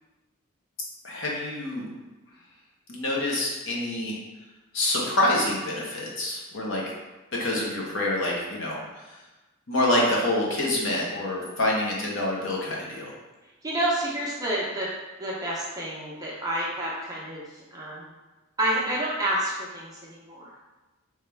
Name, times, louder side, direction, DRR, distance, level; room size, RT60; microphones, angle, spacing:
voice 1, 1.0-1.8 2.9-4.2 4.7-6.8 7.3-8.8 9.7-13.1, left 1 dB, 65° left, -3 dB, 0.9 m, -26 dB
voice 2, 13.6-14.9 15.2-17.4 17.7-18.0 18.6-20.5, right 1 dB, 15° right, -6 dB, 0.7 m, -29 dB
3.4 x 3.2 x 3.3 m, 1.1 s
head